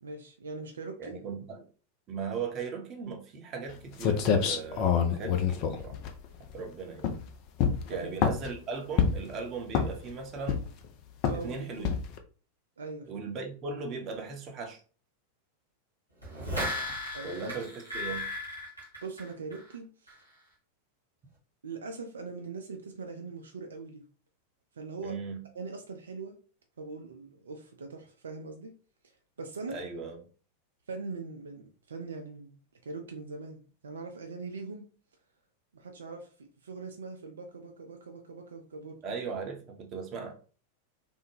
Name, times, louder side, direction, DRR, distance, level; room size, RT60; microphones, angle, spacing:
voice 1, 0.0-1.1 7.9-8.1 11.2-12.0 12.8-13.1 17.1-17.4 19.0-20.2 21.6-24.0 24.8-25.2 25.5-26.4 26.8-28.7 29.4-29.8 30.9-32.6 32.8-34.8 35.7-39.0, right 4 dB, 70° right, 0.4 m, -41 dB
voice 2, 1.0-1.7 2.1-6.0 6.5-7.1 7.9-10.6 11.3-11.9 13.1-14.8 17.2-18.3 25.0-25.4 29.7-30.2 39.0-40.4, right 5 dB, 30° right, 0.7 m, -38 dB
sound 1, 3.7-3.8 4.0-6.6 7.0-7.3 7.6-8.5 9.0-9.3 9.7-10.1 10.5-10.9 11.2-11.5 11.8-12.2, left 7 dB, 40° left, 0.5 m, -26 dB
sound 2, 16.2-19.7 20.1-20.2, left 1 dB, 85° left, 1.4 m, -36 dB
3.4 x 2.1 x 3.1 m
figure-of-eight pair, 90°, 0 cm